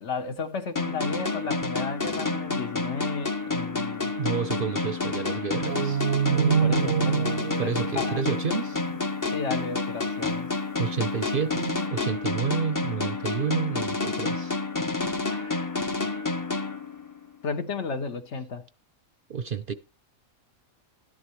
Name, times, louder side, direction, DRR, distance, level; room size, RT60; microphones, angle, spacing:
voice 1, 0.0-4.1 6.5-8.2 9.3-10.5 15.2-15.8 17.4-18.6, left 4 dB, 60° left, 1.3 m, -34 dB
sound 1, 0.8-17.4, left 3 dB, 20° left, 0.6 m, -29 dB
voice 2, 4.2-6.1 7.6-8.8 10.8-14.5 19.3-19.7, right 7 dB, 50° right, 0.7 m, -30 dB
sound 2, 5.7-9.1, right 8 dB, 75° right, 1.1 m, -26 dB
12.5 x 11.5 x 3.1 m
omnidirectional pair, 1.4 m